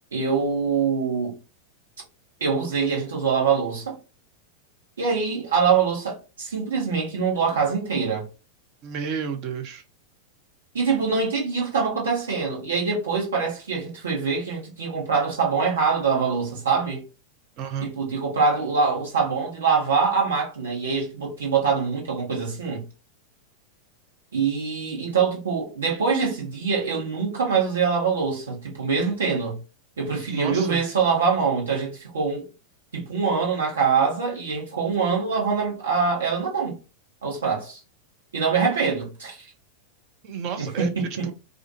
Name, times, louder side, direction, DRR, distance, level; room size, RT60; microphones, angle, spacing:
voice 1, 0.1-1.3 2.4-4.0 5.0-8.3 10.7-17.0 17.8-22.9 24.3-29.6 30.0-32.4 32.9-36.7 37.2-37.8 38.3-39.5 40.6-41.3, right 5 dB, 70° right, 1.3 m, -24 dB
voice 2, 8.8-9.8 17.6-17.9 30.3-30.8 40.2-41.3, right 6 dB, 40° right, 0.5 m, -31 dB
2.5 x 2.4 x 2.4 m
figure-of-eight pair, 90°, 0 cm